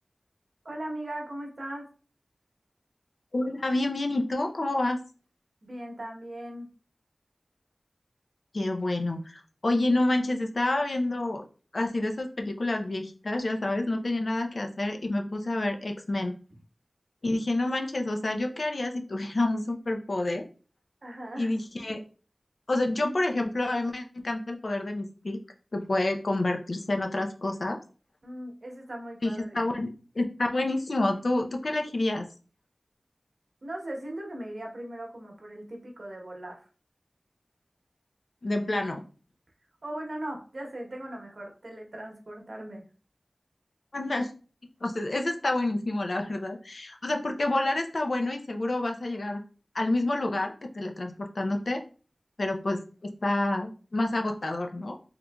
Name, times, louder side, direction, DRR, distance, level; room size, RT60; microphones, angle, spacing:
voice 1, 0.6-1.9 5.6-6.7 21.0-21.6 21.9-22.0 28.2-29.7 33.6-36.6 39.8-42.8, right 1 dB, 75° right, 1 dB, 0.9 m, -39 dB
voice 2, 3.3-5.0 8.5-11.4 11.7-16.4 17.2-20.5 21.4-22.0 22.7-25.4 25.7-27.8 29.2-29.9 30.2-32.3 38.4-39.0 43.9-44.3 44.8-49.4 49.7-51.8 52.4-55.0, left 2 dB, 75° left, 4 dB, 0.5 m, -28 dB
3.7 x 3.1 x 2.2 m, 0.38 s
wide cardioid pair, 40°, 0 cm